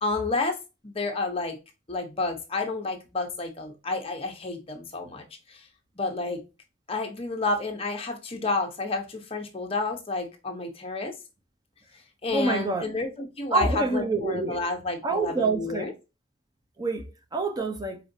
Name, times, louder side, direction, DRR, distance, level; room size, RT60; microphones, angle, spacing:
voice 1, 0.0-0.6 0.8-1.6 1.9-5.6 6.0-6.4 6.9-11.1 12.2-15.9, left 3 dB, 30° left, 0.9 m, -30 dB
voice 2, 12.3-12.8 13.5-14.6 15.0-15.9 16.8-18.0, right 3 dB, 20° right, 0.6 m, -27 dB
4.8 x 3.9 x 2.7 m
head